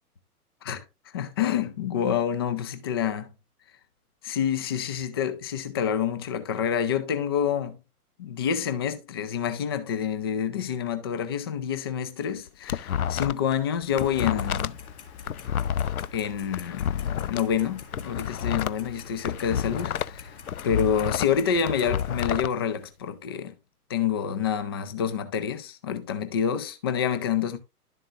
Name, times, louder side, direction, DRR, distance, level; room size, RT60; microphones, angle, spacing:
voice 1, 1.1-3.3 4.2-7.8 8.2-14.8 16.1-20.3 20.6-23.5 23.9-27.6, left 8 dB, 15° left, 0.4 m, -28 dB
sound 1, 12.3-13.6 13.8-17.4 17.8-20.2 20.5-22.5, left 9 dB, 70° left, 0.5 m, -29 dB
Clock, 13.9-22.2, left 6 dB, 45° left, 1.8 m, -45 dB
11.5 x 7.3 x 2.4 m
figure-of-eight pair, 115°, 45 cm